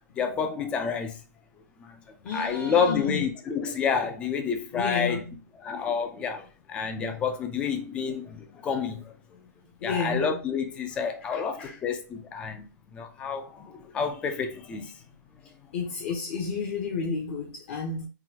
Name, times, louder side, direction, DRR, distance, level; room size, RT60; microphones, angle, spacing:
voice 1, 0.2-1.1 1.8-2.0 2.3-5.2 5.6-9.1 9.8-12.6 12.9-14.9, left 6 dB, 10° left, 0.3 m, -29 dB
voice 2, 2.2-3.2 4.7-5.4 9.8-10.4 11.3-11.8 15.7-18.1, left 4 dB, 40° left, 0.7 m, -31 dB
3.8 x 2.2 x 2.7 m
hypercardioid pair, 155°, 10 cm